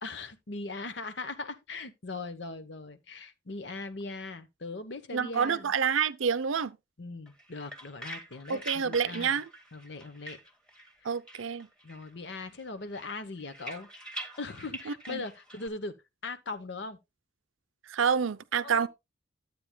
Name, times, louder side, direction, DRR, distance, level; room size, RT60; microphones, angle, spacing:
voice 1, 0.0-5.7 7.0-9.4 9.7-10.4 11.0-11.1 11.8-15.9 16.2-17.0 18.6-18.9, left 3 dB, 60° left, 0.9 m, -40 dB
voice 2, 5.1-6.8 8.5-9.5 11.0-11.7 14.9-15.2 17.9-18.9, right 6 dB, 80° right, 0.6 m, -28 dB
sound 1, 7.3-11.0 11.3-12.1 12.4-15.7, right 1 dB, 5° left, 1.4 m, -45 dB
12.0 x 8.5 x 2.2 m
head